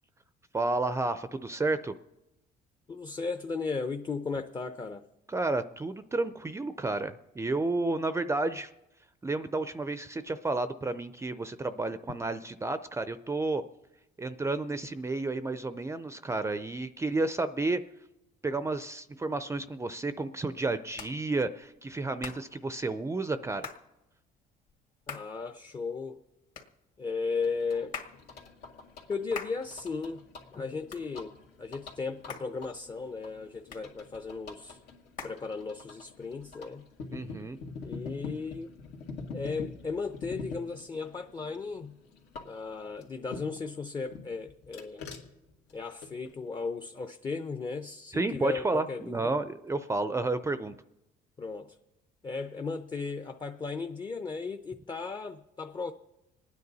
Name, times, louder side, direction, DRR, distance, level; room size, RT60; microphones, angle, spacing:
voice 1, 0.5-1.9 5.3-8.7 9.2-13.6 14.2-17.8 18.4-23.7 37.1-37.6 48.1-50.8, right 2 dB, 15° right, 0.5 m, -31 dB
voice 2, 2.9-5.0 25.1-26.2 27.0-28.0 29.1-30.2 30.5-34.8 35.2-36.9 37.8-38.7 39.3-42.0 42.4-45.1 45.7-49.3 51.4-51.8 52.2-55.9, left 4 dB, 25° left, 0.7 m, -36 dB
Hands, 19.5-36.1, left 6 dB, 50° left, 2.0 m, -48 dB
sound 1, 27.4-43.7 44.1-46.3, left 4 dB, 85° left, 2.3 m, -46 dB
27.0 x 9.6 x 4.0 m
cardioid pair, 110°, 17 cm